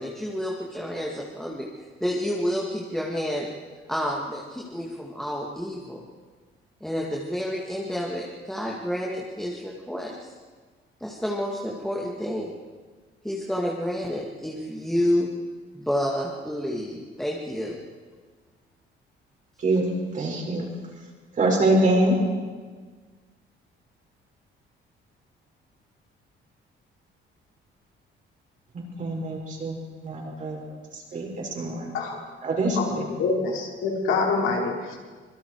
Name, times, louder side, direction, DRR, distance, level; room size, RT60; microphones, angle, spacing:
voice 1, 0.0-1.7 2.0-3.5 3.9-6.0 6.8-10.3 11.0-12.5 13.2-15.3 15.7-17.8, equal, ahead, -3 dB, 2.1 m, -29 dB
voice 2, 20.1-20.7 21.4-22.2 28.7-30.6 31.1-31.9 32.4-33.0, right 2 dB, 40° right, -1 dB, 6.0 m, -24 dB
voice 3, 32.7-35.0, left 4 dB, 75° left, -1 dB, 4.9 m, -26 dB
25.5 x 23.0 x 4.8 m, 1.5 s
cardioid pair, 160°, 21 cm